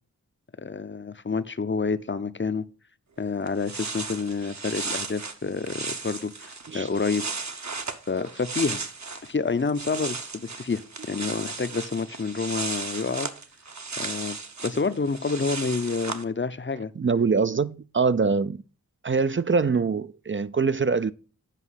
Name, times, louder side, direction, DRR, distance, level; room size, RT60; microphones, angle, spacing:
voice 1, 0.6-2.6 3.2-7.2 8.1-8.8 9.2-10.8 11.1-13.3 14.0-14.4 14.6-16.9, left 4 dB, 35° left, 0.6 m, -28 dB
sound 1, 3.2-3.3 3.5-9.3 9.6-16.2, right 4 dB, 55° right, 1.0 m, -35 dB
voice 2, 17.0-18.6 19.0-21.1, right 5 dB, 35° right, 0.4 m, -24 dB
8.3 x 5.3 x 5.6 m
wide cardioid pair, 40°, 34 cm